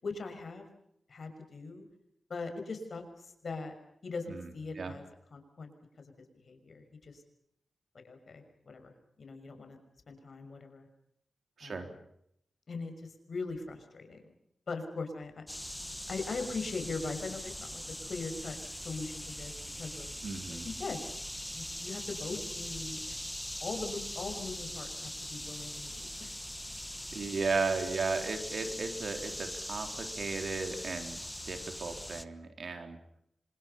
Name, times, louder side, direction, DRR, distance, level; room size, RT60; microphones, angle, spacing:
voice 1, 0.0-0.7 1.1-1.8 2.3-3.7 4.0-5.0 5.3-5.7 6.0-7.2 8.0-9.8 10.1-10.9 11.6-11.9 12.7-12.9 13.3-14.2 14.7-15.4 16.1-17.8 18.1-18.6 18.8-19.5 19.8-20.1 20.6-21.0 21.5-23.2 23.6-26.3, left 3 dB, 60° left, 6 dB, 6.1 m, -40 dB
sound 1, 15.5-32.2, equal, 5° left, 1.3 m, -41 dB
voice 2, 20.2-20.7 27.1-33.0, right 4 dB, 60° right, 6 dB, 4.0 m, -35 dB
29.5 x 26.0 x 5.8 m, 0.74 s
wide cardioid pair, 95°, 0 cm